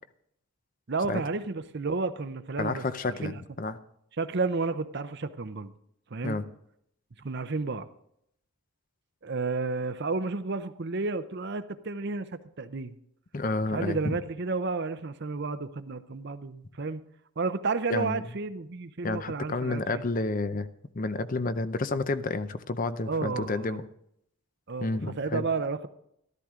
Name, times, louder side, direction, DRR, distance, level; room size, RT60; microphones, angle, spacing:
voice 1, 0.9-3.4 4.2-5.7 6.1-6.4 7.2-7.9 9.2-12.9 13.7-17.0 17.4-20.0 23.1-23.8 24.7-25.9, right 3 dB, 50° right, 11 dB, 0.6 m, -32 dB
voice 2, 2.6-3.8 6.2-6.4 13.3-14.2 17.9-18.2 19.0-20.7 20.9-23.8 24.8-25.4, left 3 dB, 40° left, 12 dB, 0.6 m, -30 dB
13.5 x 13.0 x 3.7 m, 0.73 s
head